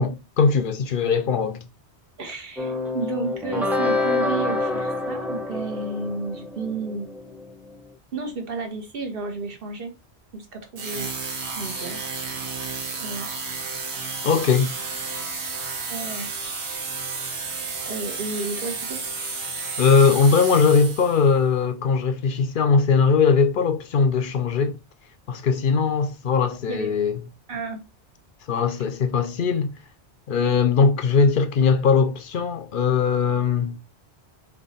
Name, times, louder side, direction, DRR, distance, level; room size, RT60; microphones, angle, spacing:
voice 1, 0.0-1.7 14.2-14.7 19.8-24.8 25.3-27.2 28.5-29.7 30.3-33.8, left 5 dB, 60° left, 0.7 m, -20 dB
voice 2, 2.2-7.1 8.1-9.9 10.3-11.1 11.5-12.0 13.0-13.3 15.9-16.3 17.9-19.0 26.7-26.9 27.5-27.8, right 3 dB, 60° right, 1.2 m, -32 dB
sound 1, 2.6-7.5, left 2 dB, ahead, 0.5 m, -27 dB
sound 2, 10.8-21.3, right 4 dB, 80° right, 1.3 m, -32 dB
3.4 x 3.0 x 4.0 m
omnidirectional pair, 1.1 m